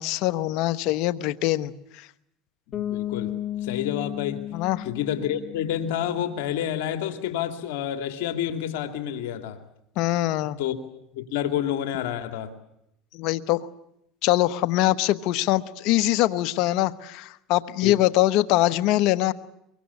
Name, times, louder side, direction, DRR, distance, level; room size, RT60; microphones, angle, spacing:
voice 1, 0.0-2.1 4.5-4.8 10.0-10.6 13.1-13.7 14.2-19.3, left 15 dB, 65° left, 14 dB, 1.2 m, -23 dB
voice 2, 2.7-3.3 3.6-4.4 4.8-9.6 10.6-10.7 11.1-12.5 17.8-17.9, left 10 dB, 80° left, 8 dB, 2.7 m, -29 dB
Bass guitar, 2.7-6.4, left 12 dB, 40° left, 2.0 m, -34 dB
24.0 x 23.0 x 8.4 m, 0.78 s
supercardioid pair, 105°, 0 cm